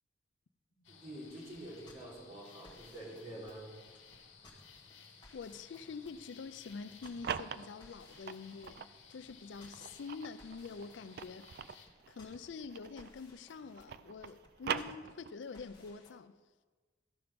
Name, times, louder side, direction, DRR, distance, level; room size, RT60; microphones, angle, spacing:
sound 1, 0.8-11.9, left 6 dB, 90° left, 1.5 m, -58 dB
voice 1, 0.8-3.7 9.8-9.9, right 1 dB, 40° right, 3.7 m, -47 dB
sound 2, 1.3-16.1, left 2 dB, 25° left, 1.5 m, -62 dB
voice 2, 5.3-11.5 12.1-16.3, left 5 dB, 70° left, 0.4 m, -46 dB
sound 3, 6.8-9.0 9.5-13.3 13.5-15.5, right 7 dB, 55° right, 0.3 m, -42 dB
14.0 x 5.8 x 5.2 m
head